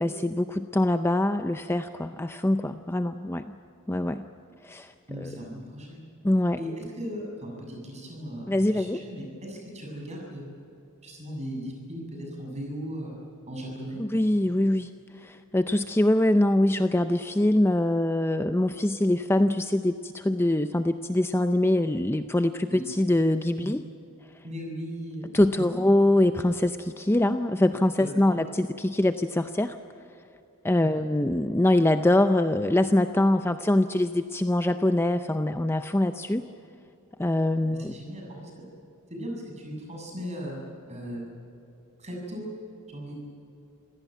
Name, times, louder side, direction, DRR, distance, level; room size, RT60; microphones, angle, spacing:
voice 1, 0.0-3.6 3.9-4.2 4.6-5.4 6.2-6.6 8.5-9.0 14.0-14.9 15.2-23.8 25.3-29.8 30.6-36.4 37.2-38.0, left 1 dB, 10° left, 9 dB, 0.5 m, -24 dB
voice 2, 5.1-6.0 6.6-10.4 11.0-13.1 13.5-14.0 22.7-22.8 23.6-23.7 24.4-25.8 28.0-28.1 30.8-31.0 37.9-38.5 39.1-40.6 40.9-41.2 42.0-42.4 42.9-43.2, equal, 30° right, 0 dB, 7.3 m, -37 dB
27.0 x 17.0 x 9.2 m, 2.8 s
head